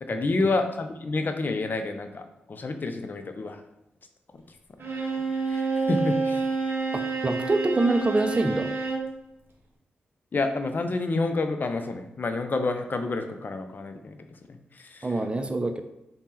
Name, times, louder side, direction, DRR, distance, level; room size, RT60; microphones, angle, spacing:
voice 1, 0.0-3.6 5.5-6.5 10.3-14.2 14.5-15.1, left 3 dB, 45° left, 7 dB, 0.4 m, -29 dB
Bowed string instrument, 4.8-9.1, right 4 dB, 60° right, 0.6 m, -28 dB
voice 2, 6.9-8.7 15.0-15.8, right 2 dB, 25° right, 8 dB, 0.4 m, -25 dB
3.4 x 2.2 x 2.8 m, 0.87 s
supercardioid pair, 40°, 4 cm